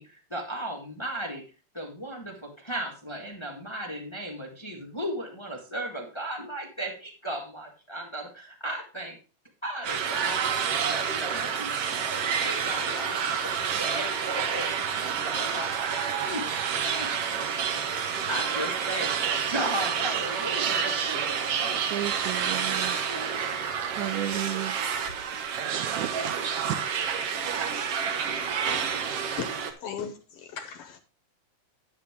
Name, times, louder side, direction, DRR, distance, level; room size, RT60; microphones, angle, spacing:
voice 1, 0.0-1.4 1.7-9.2 9.6-16.4 16.9-19.1 19.5-21.9, right 1 dB, 15° left, 1 dB, 1.0 m, -36 dB
sound 1, 9.8-29.7, right 7 dB, 60° right, 1.8 m, -29 dB
voice 2, 21.9-23.0 23.8-24.8 25.2-27.1, right 12 dB, 85° right, 10 dB, 2.3 m, -34 dB
voice 3, 29.3-30.2 30.6-31.0, left 7 dB, 70° left, 7 dB, 1.6 m, -36 dB
10.5 x 8.6 x 3.6 m, 0.35 s
omnidirectional pair, 3.4 m